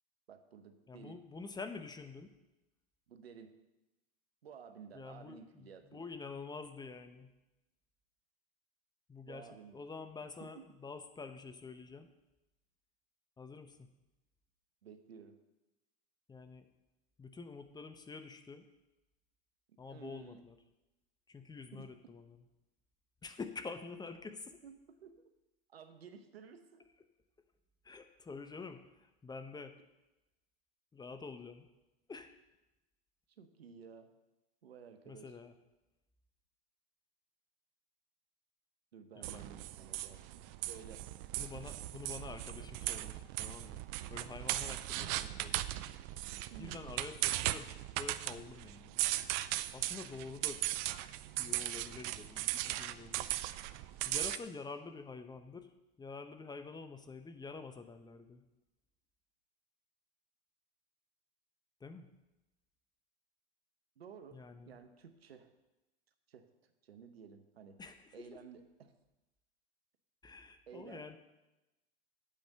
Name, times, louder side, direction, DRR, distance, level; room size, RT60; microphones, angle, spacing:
voice 1, 0.3-1.3 3.1-3.6 4.4-6.1 9.2-9.8 10.4-10.6 14.8-15.4 19.7-20.4 21.7-21.9 24.6-25.2 25.7-26.9 33.4-34.1 34.6-35.4 38.9-41.1 46.5-46.8 64.0-64.4 64.7-65.5 66.3-66.5 66.8-67.8 68.1-68.9 70.7-71.2, right 6 dB, 90° right, 9 dB, 1.0 m, -54 dB
voice 2, 0.9-2.3 4.9-7.3 9.1-12.1 13.4-13.9 16.3-16.6 17.2-18.7 19.8-20.6 21.3-22.4 23.2-24.6 27.8-29.8 30.9-31.7 32.1-32.3 35.1-35.5 39.1-39.4 41.4-43.8 44.1-45.7 46.6-49.1 49.7-50.6 51.4-53.3 54.0-55.7 56.0-58.4 61.8-62.1 64.3-64.8 67.8-68.4 70.2-71.2, left 4 dB, 15° left, 9 dB, 0.8 m, -47 dB
sound 1, 39.2-54.4, right 16 dB, 50° right, 0.5 m, -38 dB
8.8 x 5.2 x 7.8 m, 1.0 s
hypercardioid pair, 100°, 29 cm